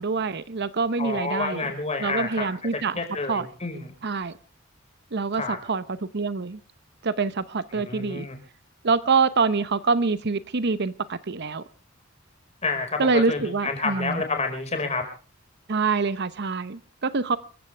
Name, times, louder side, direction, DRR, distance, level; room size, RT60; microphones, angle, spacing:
voice 1, 0.0-1.7 2.0-3.0 3.3-3.5 4.0-4.3 5.1-6.6 7.0-8.3 8.8-11.6 13.0-14.2 15.7-17.4, right 4 dB, 55° right, 14 dB, 0.8 m, -25 dB
voice 2, 1.0-2.5 2.9-3.9 5.3-5.6 7.7-8.4 12.6-15.0, left 3 dB, 35° left, 5 dB, 5.0 m, -29 dB
27.0 x 15.0 x 3.4 m, 0.36 s
head